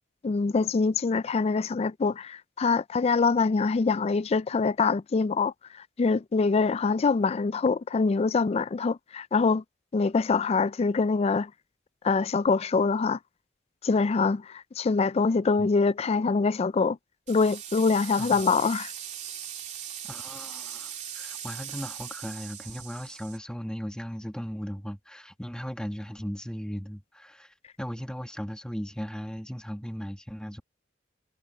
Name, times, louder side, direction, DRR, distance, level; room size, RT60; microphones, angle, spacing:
voice 1, 0.2-9.6 9.9-11.5 12.0-13.2 13.8-17.0 17.3-18.9, left 4 dB, 30° left, 0.3 m, -24 dB
sound 1, 17.3-23.4, right 9 dB, 40° right, 2.9 m, -39 dB
voice 2, 20.1-30.6, equal, 5° left, 1.9 m, -37 dB
head